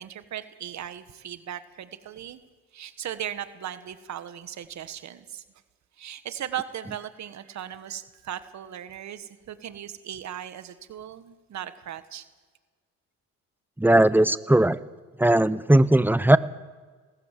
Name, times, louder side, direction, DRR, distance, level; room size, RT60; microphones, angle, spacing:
voice 1, 0.0-2.4 2.7-5.4 6.0-12.2, right 10 dB, 65° right, 12 dB, 1.5 m, -37 dB
voice 2, 13.8-14.8 15.2-16.4, right 1 dB, 5° right, 16 dB, 0.8 m, -18 dB
19.0 x 18.5 x 7.6 m, 1.4 s
cardioid pair, 90°, 30 cm